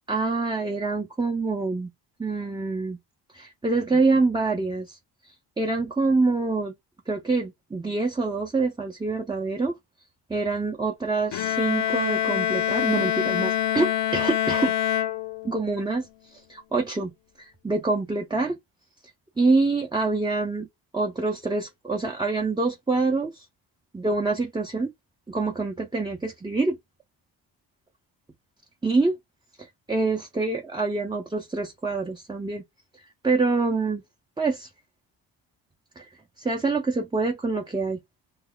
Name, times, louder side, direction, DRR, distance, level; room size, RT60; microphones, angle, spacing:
voice 1, 0.1-1.9 2.2-3.0 3.3-6.7 7.1-9.7 10.3-14.7 15.4-18.6 19.4-20.7 20.9-23.4 23.9-24.9 25.3-26.8 28.8-29.2 29.6-32.6 32.9-34.0 34.4-34.7 36.0-36.1 36.4-38.0, right 3 dB, 10° right, 0.5 m, -26 dB
Bowed string instrument, 11.3-15.8, left 11 dB, 65° left, 0.6 m, -25 dB
3.1 x 2.3 x 3.8 m
cardioid pair, 100°, 45 cm